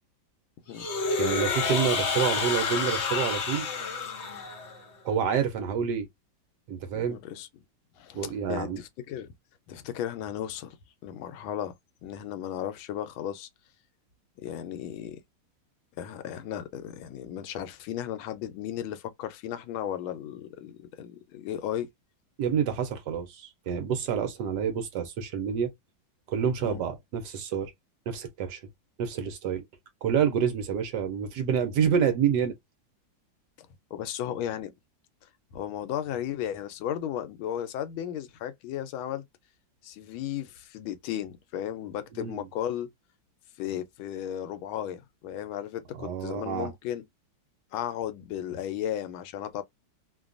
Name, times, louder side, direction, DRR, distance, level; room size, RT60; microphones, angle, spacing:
sound 1, 0.7-4.8, left 4 dB, 55° left, 0.7 m, -29 dB
voice 1, 1.2-3.7 5.0-6.1 6.7-7.2 8.1-8.8 22.4-25.7 26.3-27.7 28.1-28.6 29.0-29.6 30.0-32.5 42.1-42.3 46.0-46.7, right 7 dB, 70° right, 1.1 m, -28 dB
voice 2, 6.9-7.5 8.0-9.3 9.7-10.8 11.0-11.7 12.0-13.5 14.4-15.2 16.0-21.9 26.6-26.8 33.6-34.7 35.5-39.2 39.8-42.9 43.6-47.0 47.7-49.6, left 10 dB, 90° left, 1.4 m, -35 dB
3.2 x 2.2 x 2.4 m
omnidirectional pair, 2.2 m